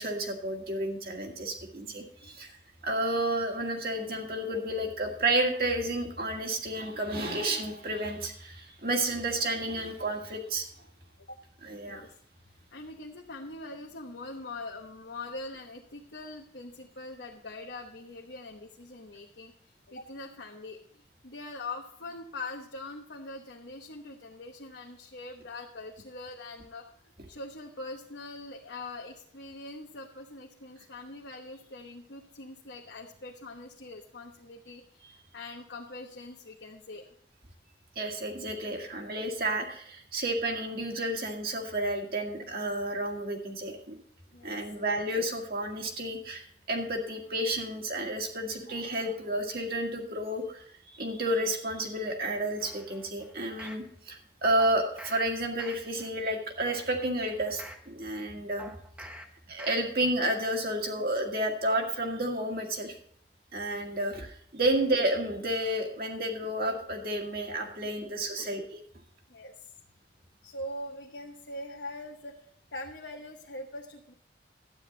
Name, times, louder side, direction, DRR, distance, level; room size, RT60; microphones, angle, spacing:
voice 1, 0.0-2.6 2.8-10.7 11.6-12.1 35.0-35.2 38.0-43.9 44.4-50.6 50.9-58.7 59.0-59.1 59.5-62.9 63.5-68.6, right 1 dB, 55° right, 1 dB, 2.0 m, -31 dB
voice 2, 12.7-37.0 44.3-44.6 68.4-68.6 69.3-69.7 70.4-72.4 72.7-74.1, left 2 dB, 75° left, 0 dB, 1.1 m, -43 dB
sound 1, 52.6-53.9 54.6-55.2 55.6-56.1 56.5-57.9 58.6-59.2 59.6-60.1 60.5-60.6, equal, 5° right, 0.9 m, -47 dB
12.0 x 9.5 x 4.0 m, 0.62 s
head